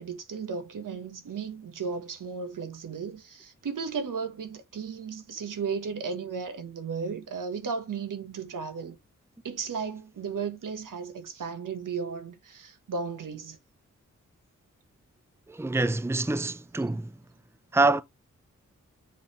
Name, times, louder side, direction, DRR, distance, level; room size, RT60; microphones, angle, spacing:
voice 1, 0.0-9.0 9.4-13.6, right 5 dB, 75° right, 1.5 m, -35 dB
voice 2, 15.5-17.1 17.7-18.0, right 2 dB, 10° right, 0.7 m, -25 dB
7.4 x 3.4 x 4.3 m
cardioid pair, 40°, 32 cm